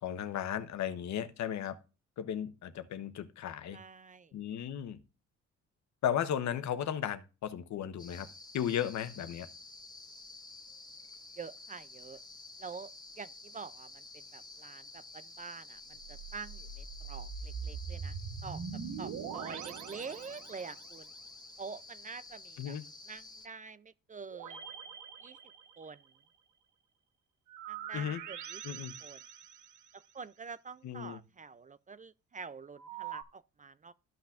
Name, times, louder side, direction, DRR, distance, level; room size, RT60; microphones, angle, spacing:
voice 1, 0.0-1.8 2.2-3.8 4.3-5.0 6.0-8.3 8.5-9.5 22.6-22.8 27.9-28.2 28.6-29.0 30.8-31.2, left 9 dB, 65° left, 1.0 m, -35 dB
voice 2, 3.7-4.3 11.4-12.2 12.6-12.9 13.2-18.2 18.4-18.6 19.0-21.1 21.6-22.8 23.1-24.6 25.2-25.4 25.8-26.0 27.7-28.6 29.0-29.2 29.9-33.9, right 5 dB, 25° right, 0.4 m, -46 dB
sound 1, 8.0-23.5, left 3 dB, 15° left, 1.5 m, -51 dB
sound 2, 15.9-20.9 24.3-26.1 27.5-30.1 32.8-33.2, right 7 dB, 70° right, 1.2 m, -43 dB
13.5 x 5.8 x 2.5 m
cardioid pair, 90°, 30 cm